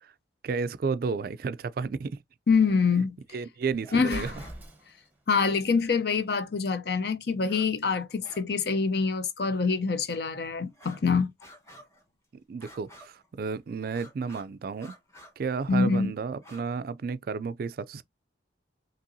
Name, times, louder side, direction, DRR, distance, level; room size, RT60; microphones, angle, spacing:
voice 1, 0.4-2.2 3.3-4.3 12.5-14.9 15.4-18.0, right 5 dB, 50° right, 0.3 m, -32 dB
voice 2, 2.5-3.1 3.9-4.3 5.3-11.3 15.7-16.1, left 5 dB, 55° left, 0.6 m, -25 dB
sound 1, 3.8-4.1 4.4-4.6 6.2-6.3 7.4-7.7 8.0-8.5 8.8-8.9 9.6-9.7 10.7-11.1 11.4-12.1 12.6-13.3 13.8-14.5 14.8-15.3 16.3-16.7, equal, 15° left, 1.1 m, -51 dB
Explosion, 4.0-5.2, right 1 dB, 10° right, 0.8 m, -41 dB
5.4 x 2.9 x 2.6 m
head